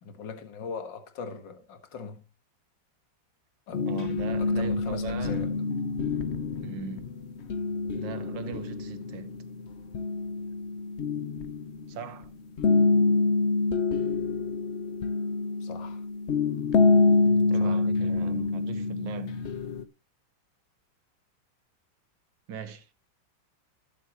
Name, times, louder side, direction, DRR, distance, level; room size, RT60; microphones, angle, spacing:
voice 1, 0.0-2.2 3.7-3.9 4.4-5.5 15.6-16.0 17.6-17.8, left 5 dB, 70° left, 2.3 m, -39 dB
sound 1, 3.7-12.2 12.6-19.8, left 3 dB, 50° left, 0.8 m, -26 dB
voice 2, 3.8-5.5 6.6-7.1 7.9-9.3 11.9-12.3 17.5-19.4 22.5-22.9, right 7 dB, 75° right, 1.7 m, -40 dB
20.5 x 7.4 x 3.0 m
omnidirectional pair, 2.1 m